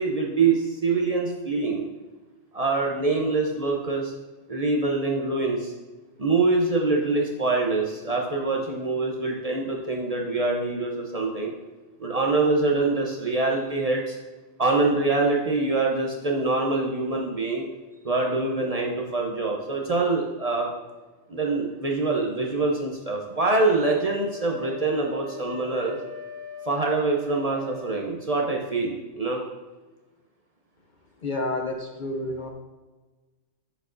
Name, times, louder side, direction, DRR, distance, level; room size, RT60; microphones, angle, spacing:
voice 1, 0.0-1.9 2.5-4.1 4.5-5.7 6.2-11.5 12.0-14.2 14.6-17.6 18.0-20.7 21.3-26.0 26.7-29.4, right 3 dB, 40° right, -1 dB, 0.7 m, -25 dB
Wind instrument woodwind instrument, 23.6-28.0, left 3 dB, 10° left, 2.0 m, -41 dB
voice 2, 31.2-32.5, left 2 dB, 50° left, 3 dB, 0.6 m, -29 dB
7.7 x 6.5 x 2.5 m, 1.2 s
omnidirectional pair, 1.2 m